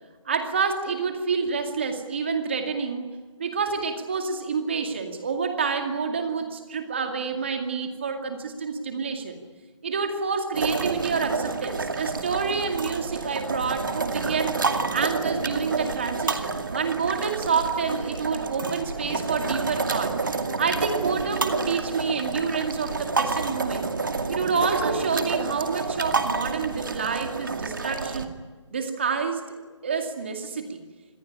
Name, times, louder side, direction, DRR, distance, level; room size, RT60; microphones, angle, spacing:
voice 1, 0.2-3.1 3.4-9.4 9.8-14.6 14.9-20.2 20.6-23.8 24.3-28.3 28.7-29.6 29.8-30.8, right 5 dB, 20° right, 5 dB, 2.3 m, -28 dB
sound 1, 10.5-28.2, right 4 dB, 40° right, 2.3 m, -29 dB
26.5 x 21.0 x 9.9 m, 1.4 s
figure-of-eight pair, 175°, 16 cm